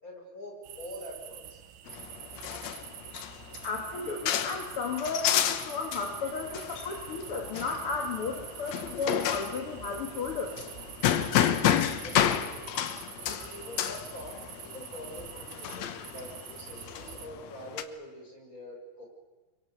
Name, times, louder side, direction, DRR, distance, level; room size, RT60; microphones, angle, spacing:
voice 1, 0.0-1.6 12.0-12.7 13.3-19.0, left 1 dB, 20° left, 1 dB, 6.1 m, -45 dB
sound 1, 0.6-17.3, right 10 dB, 80° right, 3.3 m, -46 dB
sound 2, 1.9-17.8, left 10 dB, 80° left, 1.5 m, -31 dB
voice 2, 3.6-10.5, left 4 dB, 45° left, 3 dB, 2.2 m, -34 dB
29.0 x 23.0 x 6.9 m, 1.3 s
omnidirectional pair, 4.6 m